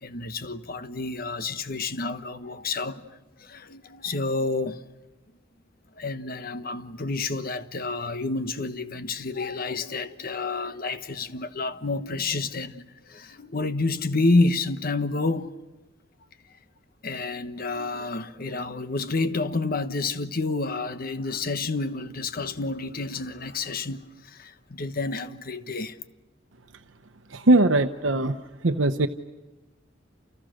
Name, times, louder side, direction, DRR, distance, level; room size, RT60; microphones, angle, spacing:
voice 1, 0.0-4.8 6.0-15.6 17.0-26.0, left 3 dB, 50° left, 1.2 m, -29 dB
voice 2, 27.3-28.4 28.6-29.1, right 2 dB, 80° right, 0.9 m, -20 dB
29.0 x 29.0 x 6.5 m
head